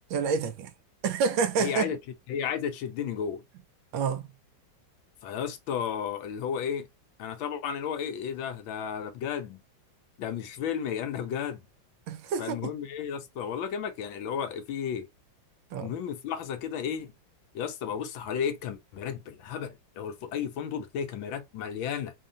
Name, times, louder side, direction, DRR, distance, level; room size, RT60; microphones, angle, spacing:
voice 1, 0.1-0.7 1.0-1.9 3.9-4.3 12.1-12.7 15.7-15.9, right 6 dB, 75° right, 1.4 m, -28 dB
voice 2, 1.6-2.0 2.3-3.4 5.2-6.9 7.2-9.6 10.2-11.6 12.4-15.1 15.8-17.1 17.5-22.1, left 8 dB, 80° left, 1.5 m, -33 dB
3.7 x 2.3 x 3.8 m
omnidirectional pair, 2.2 m